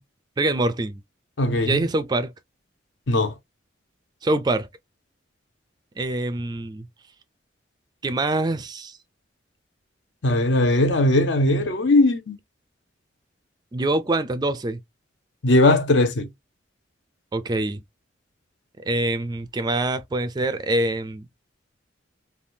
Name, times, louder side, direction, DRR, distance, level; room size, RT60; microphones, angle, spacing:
voice 1, 0.4-1.0 1.6-2.3 4.2-4.7 6.0-6.9 8.0-9.0 13.7-14.8 17.3-17.8 18.8-21.3, right 2 dB, 20° right, 0.3 m, -25 dB
voice 2, 1.4-1.8 3.1-3.3 10.2-12.4 15.4-16.3, left 2 dB, 70° left, 0.6 m, -19 dB
3.4 x 2.2 x 2.6 m
head